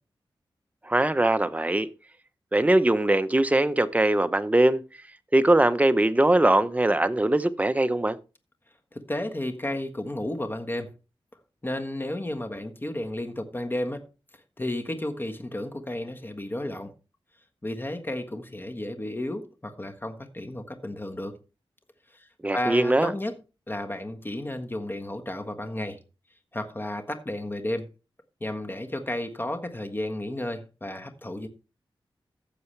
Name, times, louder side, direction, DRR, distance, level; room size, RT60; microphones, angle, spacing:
voice 1, 0.9-1.9 2.5-4.8 5.3-8.2 22.4-23.1, right 1 dB, 15° right, 0.8 m, -21 dB
voice 2, 8.9-10.9 11.6-14.0 14.6-16.9 17.6-21.3 22.1-22.3 22.5-23.3 23.7-26.0 26.5-27.9 28.4-31.5, left 1 dB, 25° left, 1.5 m, -32 dB
15.5 x 6.9 x 3.3 m
wide cardioid pair, 75°, 9 cm